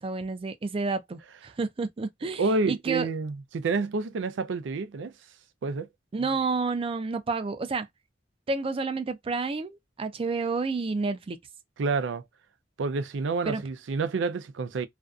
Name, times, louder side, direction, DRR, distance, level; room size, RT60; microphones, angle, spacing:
voice 1, 0.0-3.1 6.1-7.9 8.5-11.4 13.5-13.6, right 4 dB, 30° right, 0.4 m, -30 dB
voice 2, 2.4-5.1 5.6-5.9 11.8-12.2 12.8-14.9, right 4 dB, 90° right, 0.4 m, -28 dB
2.5 x 2.2 x 2.4 m
head